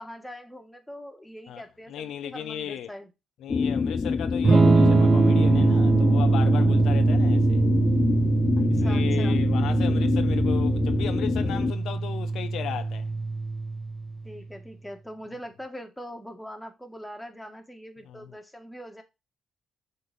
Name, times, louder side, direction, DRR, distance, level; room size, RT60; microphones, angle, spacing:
voice 1, 0.0-3.1 8.6-9.5 14.2-19.0, equal, 5° left, 1.8 m, -42 dB
voice 2, 1.5-2.9 3.4-7.7 8.7-13.1 18.0-18.4, left 10 dB, 75° left, 0.7 m, -36 dB
sound 1, 3.5-11.7, left 5 dB, 35° left, 0.5 m, -26 dB
Electric guitar / Strum, 4.4-14.2, right 3 dB, 35° right, 1.1 m, -22 dB
7.1 x 4.1 x 5.1 m
cardioid pair, 90°, 0 cm